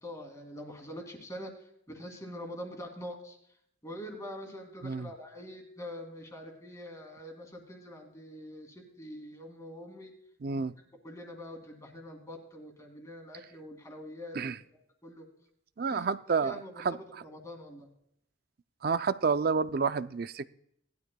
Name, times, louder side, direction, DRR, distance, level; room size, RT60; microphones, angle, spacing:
voice 1, 0.0-1.5 1.9-3.4 3.8-10.1 10.5-10.6 11.0-14.5 15.0-15.2 15.9-16.0 16.4-16.8 17.2-17.9, equal, 15° left, 2.3 m, -44 dB
voice 2, 10.4-10.7 14.3-14.6 15.8-17.2 18.8-20.5, right 5 dB, 45° right, 0.4 m, -30 dB
19.0 x 12.0 x 2.2 m
head